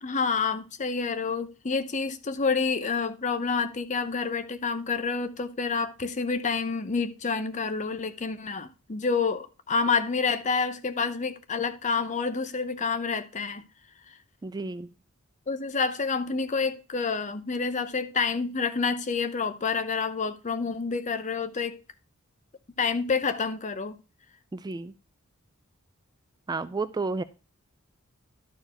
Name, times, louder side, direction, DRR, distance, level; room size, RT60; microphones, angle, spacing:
voice 1, 0.0-13.6 15.5-21.8 22.8-24.0, left 5 dB, 35° left, 0.7 m, -28 dB
voice 2, 14.4-14.9 24.5-24.9 26.5-27.2, right 3 dB, 20° right, 0.3 m, -31 dB
12.0 x 4.6 x 4.3 m
head